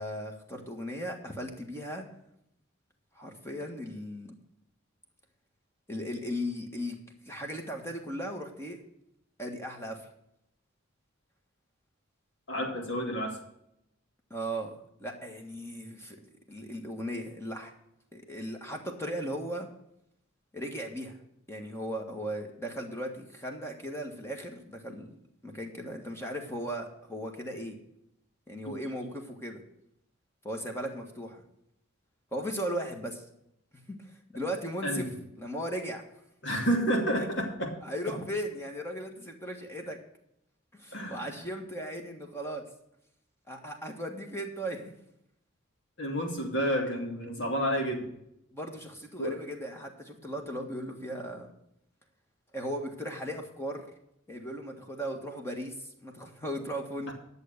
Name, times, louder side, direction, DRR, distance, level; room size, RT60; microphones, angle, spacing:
voice 1, 0.0-2.1 3.2-4.4 5.9-7.0 7.3-8.8 9.4-10.0 14.3-14.7 15.0-17.7 18.1-19.7 20.5-21.2 21.5-25.2 25.4-27.8 28.5-29.6 30.4-31.4 32.3-33.2 33.9-35.1 35.4-36.0 37.2-37.3 37.8-40.0 40.7-42.6 43.5-44.9 48.5-51.5 52.5-53.8 54.3-57.1, equal, 10° left, 3 dB, 1.6 m, -37 dB
voice 2, 12.5-13.4 34.8-35.1 36.4-37.7 40.9-41.3 46.0-48.1 49.2-49.4 57.1-57.2, equal, 60° left, 1 dB, 2.7 m, -30 dB
11.5 x 7.1 x 6.6 m, 0.77 s
head